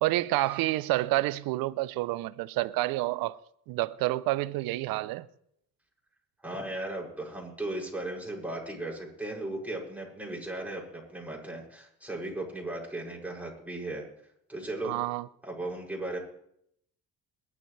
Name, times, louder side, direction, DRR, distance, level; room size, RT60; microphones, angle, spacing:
voice 1, 0.0-3.4 3.7-5.3 14.8-15.3, right 18 dB, 80° right, 0.8 m, -29 dB
voice 2, 6.4-14.1 14.5-15.0 15.4-16.2, right 2 dB, 5° right, 6.8 m, -36 dB
22.0 x 12.0 x 3.4 m
supercardioid pair, 70°, 35 cm